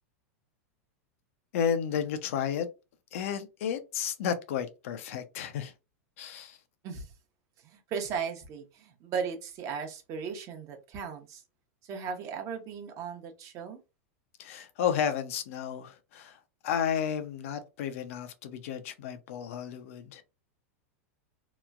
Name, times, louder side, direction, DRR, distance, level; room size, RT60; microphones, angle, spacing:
voice 1, 1.5-2.7 3.1-5.7 6.2-6.6 14.4-16.4 16.6-20.2, left 8 dB, 70° left, 0.5 m, -32 dB
voice 2, 7.6-11.4 11.8-13.8, right 6 dB, 40° right, 0.8 m, -37 dB
3.0 x 2.1 x 2.3 m
hypercardioid pair, 120°, 8 cm